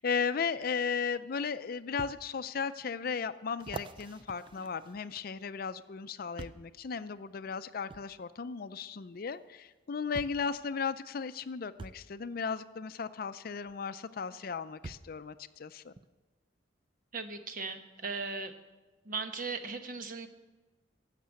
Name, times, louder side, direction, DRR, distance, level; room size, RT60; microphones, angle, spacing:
voice 1, 0.0-15.9, left 5 dB, 50° left, 13 dB, 0.4 m, -36 dB
sound 1, 0.9-1.0 2.0-2.2 2.8-2.9 3.6-5.5 6.4-6.7 7.9-8.1 9.3-9.4 10.1-10.5 11.8-12.0 13.7-13.8 14.8-15.2 16.0-16.1, right 3 dB, 25° right, 0.4 m, -45 dB
voice 2, 17.1-18.5 19.0-20.3, right 4 dB, 45° right, 7 dB, 1.0 m, -37 dB
16.0 x 6.7 x 8.1 m, 1.2 s
head